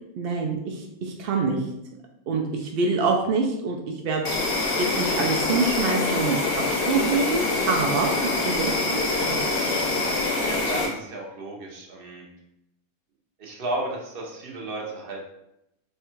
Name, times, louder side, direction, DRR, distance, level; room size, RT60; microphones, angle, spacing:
voice 1, 0.2-1.6 2.3-3.8 4.0-4.2 4.5-6.4 6.8-9.4, right 4 dB, 75° right, 1 dB, 0.5 m, -26 dB
Insect, 4.2-10.9, left 2 dB, 50° left, 0.8 m, -25 dB
voice 2, 10.4-12.2 13.4-15.2, right 2 dB, 45° right, -1 dB, 0.9 m, -33 dB
3.4 x 2.3 x 4.3 m, 0.84 s
omnidirectional pair, 1.5 m